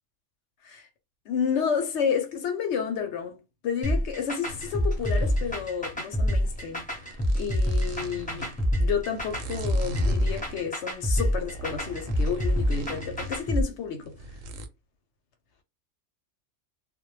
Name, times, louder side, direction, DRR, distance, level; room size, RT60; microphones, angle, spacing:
voice 1, 1.3-3.4 3.6-6.9 7.3-8.5 8.8-14.2, left 7 dB, 65° left, 0.8 m, -30 dB
sound 1, 3.8-13.6, equal, 10° left, 0.6 m, -26 dB
sound 2, 4.4-14.7, right 1 dB, 80° right, 0.9 m, -41 dB
2.2 x 2.1 x 3.0 m
omnidirectional pair, 1.4 m